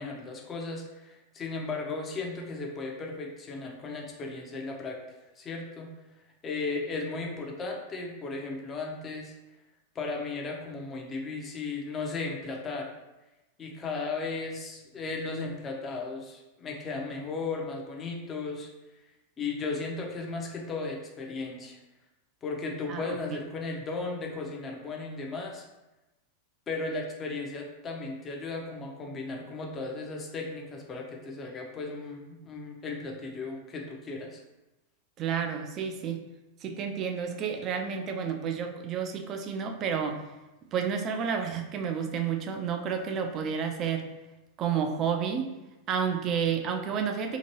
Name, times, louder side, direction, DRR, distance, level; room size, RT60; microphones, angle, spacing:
voice 1, 0.0-5.0 5.4-5.9 6.4-9.3 9.9-12.9 13.6-18.7 19.4-21.8 22.4-25.6 26.7-34.4, left 3 dB, 25° left, 1 dB, 0.6 m, -35 dB
voice 2, 35.2-36.2 36.6-40.2 40.7-44.0 44.6-45.5 45.9-47.4, right 7 dB, 35° right, 5 dB, 0.4 m, -30 dB
2.9 x 2.5 x 2.9 m, 1.0 s
figure-of-eight pair, 90°, 0 cm